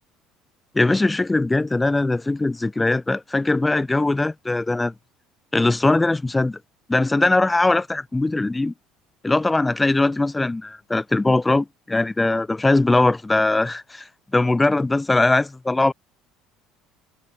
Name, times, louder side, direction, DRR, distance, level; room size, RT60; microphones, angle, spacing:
voice 1, 0.7-4.9 5.5-6.6 6.9-8.7 9.2-14.1 14.3-15.9, left 2 dB, 15° left, 1.4 m, -20 dB
figure-of-eight pair, 60°, 0 cm